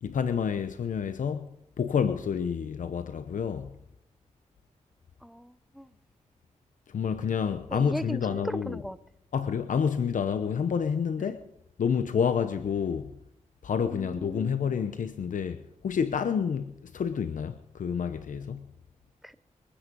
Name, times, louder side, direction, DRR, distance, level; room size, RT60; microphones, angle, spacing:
voice 1, 0.0-1.5 1.8-3.8 6.9-8.8 9.3-11.4 11.8-13.1 13.6-18.7, left 7 dB, 75° left, 0.9 m, -29 dB
voice 2, 5.2-5.9 7.7-9.0 11.2-11.3 13.9-14.6 19.2-19.3, equal, ahead, 0.8 m, -38 dB
23.0 x 10.0 x 5.4 m
cardioid pair, 65°, 13 cm